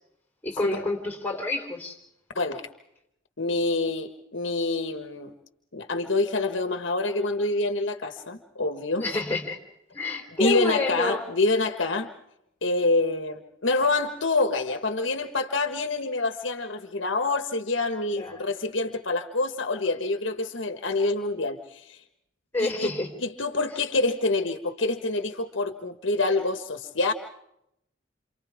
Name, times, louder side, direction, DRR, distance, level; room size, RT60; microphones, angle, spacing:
voice 1, 0.4-2.0 9.0-9.6 9.9-11.2 18.1-18.4 22.5-23.1, left 2 dB, 10° left, 1 dB, 4.3 m, -28 dB
voice 2, 2.3-2.7 3.4-5.3 5.7-9.1 10.4-12.1 12.6-22.0 22.6-22.9 23.2-27.1, left 3 dB, 70° left, 7 dB, 1.6 m, -26 dB
28.5 x 28.0 x 3.6 m, 0.78 s
head